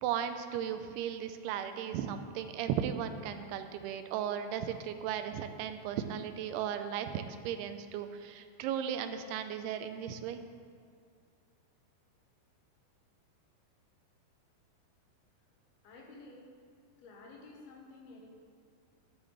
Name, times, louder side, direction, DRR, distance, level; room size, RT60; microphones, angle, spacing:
voice 1, 0.0-10.4, right 9 dB, 85° right, 8 dB, 2.6 m, -36 dB
voice 2, 15.8-16.5 17.0-18.3, left 3 dB, 75° left, -1 dB, 3.0 m, -52 dB
11.0 x 8.7 x 3.3 m, 2.3 s
omnidirectional pair, 4.6 m